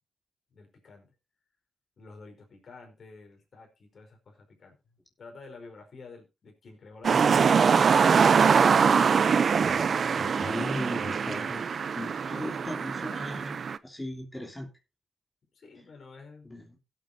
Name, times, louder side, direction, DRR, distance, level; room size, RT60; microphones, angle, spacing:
voice 1, 0.5-1.1 2.0-4.7 5.2-7.5 12.3-12.5 15.5-16.5, left 3 dB, 60° left, 2 dB, 4.9 m, -50 dB
sound 1, 7.0-13.8, right 6 dB, 60° right, 0.6 m, -23 dB
voice 2, 10.2-11.6 11.9-13.6 13.8-14.7 16.4-16.8, left 1 dB, 20° left, 2 dB, 3.0 m, -38 dB
16.5 x 8.9 x 2.8 m, 0.26 s
cardioid pair, 60°, 0 cm